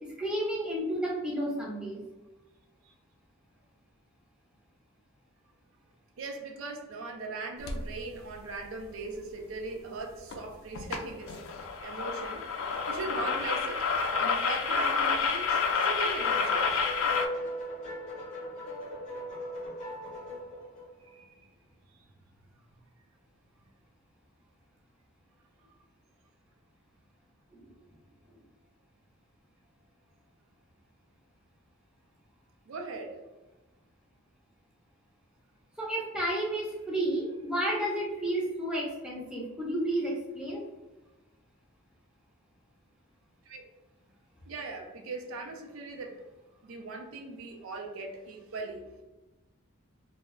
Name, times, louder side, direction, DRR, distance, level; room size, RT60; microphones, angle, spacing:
voice 1, 0.0-2.0 27.5-27.6 35.8-40.6, right 1 dB, 5° right, -4 dB, 0.5 m, -31 dB
voice 2, 6.2-11.4 11.8-12.4 12.9-13.9 14.2-16.9 21.1-21.3 21.9-22.0 32.7-33.2 43.5-43.6 44.5-46.2 46.6-48.9, right 3 dB, 75° right, 4 dB, 0.4 m, -39 dB
sound 1, 7.7-7.9 10.3-10.4 10.8-11.0 11.3-17.3, left 5 dB, 75° left, 0.4 m, -29 dB
sound 2, 16.1-21.2, equal, 35° left, 0.7 m, -39 dB
2.2 x 2.1 x 3.5 m, 1.1 s
head